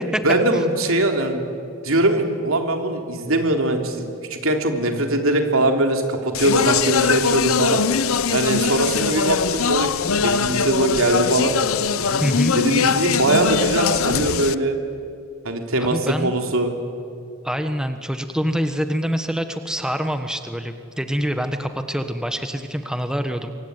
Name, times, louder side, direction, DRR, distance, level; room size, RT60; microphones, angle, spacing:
voice 1, 0.2-1.4 1.8-7.8 8.3-9.9 10.2-11.5 12.5-14.8 15.4-16.7, right 1 dB, 70° right, 4 dB, 3.4 m, -21 dB
Speech, 6.3-14.5, left 6 dB, 75° left, 0.8 m, -21 dB
voice 2, 12.2-12.5 15.8-16.3 17.4-23.5, equal, 5° right, 7 dB, 1.2 m, -25 dB
26.0 x 24.0 x 9.6 m, 2.4 s
head